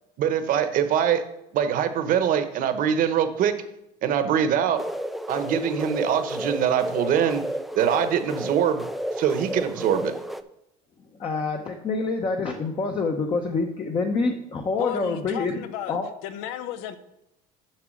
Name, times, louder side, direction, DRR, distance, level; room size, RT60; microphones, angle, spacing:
voice 1, 0.2-1.2 1.5-3.5 4.0-4.8 5.3-7.4 7.7-8.8 9.2-10.1, right 8 dB, 55° right, 9 dB, 1.0 m, -23 dB
sound 1, 4.8-10.4, equal, ahead, 0.4 m, -32 dB
voice 2, 11.2-15.5 15.9-16.1, left 3 dB, 30° left, 3 dB, 0.8 m, -26 dB
voice 3, 14.8-16.0 16.2-17.0, left 11 dB, 80° left, 11 dB, 0.9 m, -34 dB
7.4 x 5.9 x 6.3 m, 0.84 s
cardioid pair, 125°, 17 cm